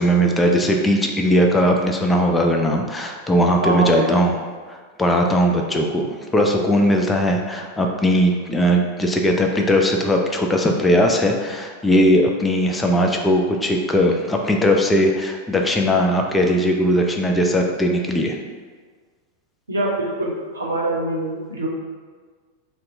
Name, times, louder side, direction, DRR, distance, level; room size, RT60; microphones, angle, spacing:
voice 1, 0.0-4.3 4.7-18.4, equal, 10° left, 1 dB, 0.3 m, -19 dB
voice 2, 3.6-4.1 19.7-21.7, right 1 dB, 75° right, -3 dB, 0.6 m, -24 dB
2.7 x 2.2 x 3.8 m, 1.5 s
figure-of-eight pair, 90°, 0 cm